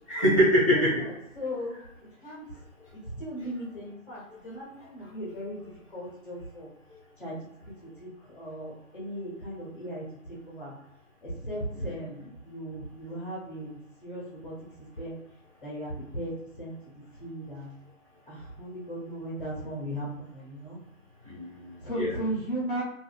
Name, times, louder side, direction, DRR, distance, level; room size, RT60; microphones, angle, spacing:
voice 1, 0.1-1.0 11.7-12.3 21.2-22.2, equal, 25° right, -10 dB, 0.6 m, -25 dB
voice 2, 1.4-1.8 2.2-2.5 2.9-5.6 5.9-6.7 7.2-7.4 7.6-7.7 8.0-10.7 11.2-14.5 15.0-15.2 15.6-16.8 17.2-17.7 18.3-20.8 21.8-22.8, right 1 dB, 40° left, -5 dB, 1.0 m, -37 dB
2.6 x 2.6 x 2.3 m, 0.87 s
hypercardioid pair, 170°, 41 cm